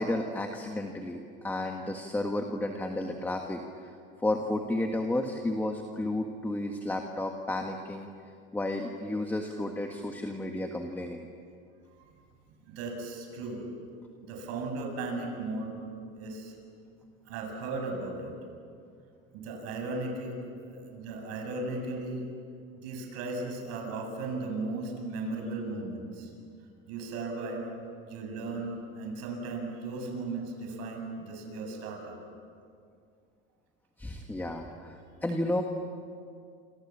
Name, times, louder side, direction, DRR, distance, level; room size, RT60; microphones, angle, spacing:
voice 1, 0.0-3.6 4.2-8.1 8.5-11.3 34.0-35.6, left 1 dB, 5° left, 3 dB, 1.6 m, -32 dB
voice 2, 12.7-13.7 14.2-15.8 16.1-16.5 17.2-18.4 19.3-20.4 20.6-22.3 22.8-26.3 26.9-27.6 28.1-32.2, right 3 dB, 60° right, 2 dB, 7.8 m, -36 dB
29.0 x 27.0 x 7.5 m, 2.3 s
cardioid pair, 145°, 30 cm